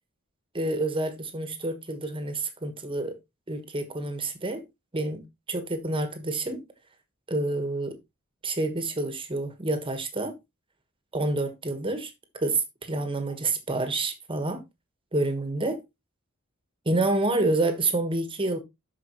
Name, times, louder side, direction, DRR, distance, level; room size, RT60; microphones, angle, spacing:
voice 1, 0.5-3.2 3.5-4.6 4.9-6.6 7.3-8.0 8.4-10.3 11.1-14.6 15.1-15.8 16.8-18.6, right 2 dB, 25° right, 1.4 m, -28 dB
12.0 x 5.0 x 3.0 m
head